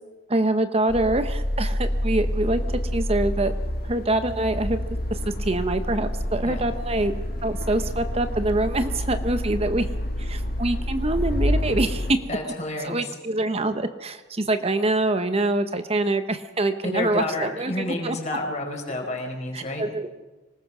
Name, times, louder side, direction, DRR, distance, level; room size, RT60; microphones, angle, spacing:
voice 1, 0.3-2.6 2.9-3.5 3.8-4.8 5.1-7.1 7.4-9.9 10.2-12.1 12.4-12.5 12.8-18.2 19.5-20.1, right 2 dB, 30° right, 10 dB, 0.8 m, -25 dB
sound 1, 0.9-12.1, equal, 55° left, 2.2 m, -28 dB
voice 2, 12.3-13.1 16.9-19.9, left 2 dB, 40° left, 2 dB, 5.1 m, -30 dB
25.5 x 19.5 x 6.1 m, 1.2 s
head